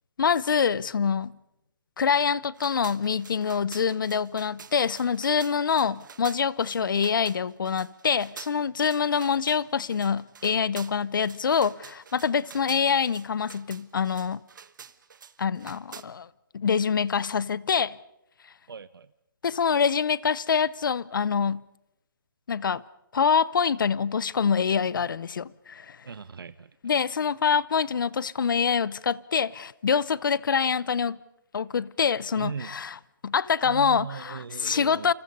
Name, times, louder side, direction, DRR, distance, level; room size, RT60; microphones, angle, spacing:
voice 1, 0.2-1.3 2.0-14.4 15.4-16.3 16.5-18.0 19.4-21.6 22.5-22.8 23.1-26.0 26.8-31.2 31.5-32.9 33.2-35.1, left 6 dB, 65° left, 0.8 m, -25 dB
sound 1, 2.5-16.0, right 6 dB, 60° right, 1.3 m, -48 dB
voice 2, 18.7-19.1 26.0-26.7 32.3-32.8 33.6-35.1, right 6 dB, 85° right, 0.8 m, -39 dB
29.0 x 25.5 x 5.4 m
hypercardioid pair, 165°, 12 cm